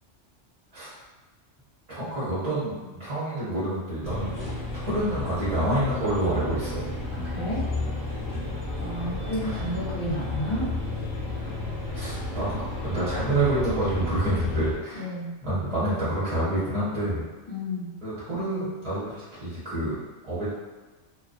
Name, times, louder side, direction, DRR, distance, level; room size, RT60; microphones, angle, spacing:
voice 1, 1.9-4.4 4.9-6.9 8.2-8.6 9.4-9.6 11.9-12.6 12.8-15.1 15.4-17.2 18.0-19.1 19.4-20.0 20.2-20.5, right 1 dB, 35° right, -10 dB, 0.7 m, -28 dB
sound 1, 4.0-14.7, left 2 dB, 25° left, 0.8 m, -32 dB
voice 2, 7.1-7.6 8.8-10.7 14.9-15.3 17.5-17.9, equal, 60° left, -8 dB, 1.2 m, -31 dB
2.5 x 2.2 x 2.4 m, 1.2 s
omnidirectional pair, 1.3 m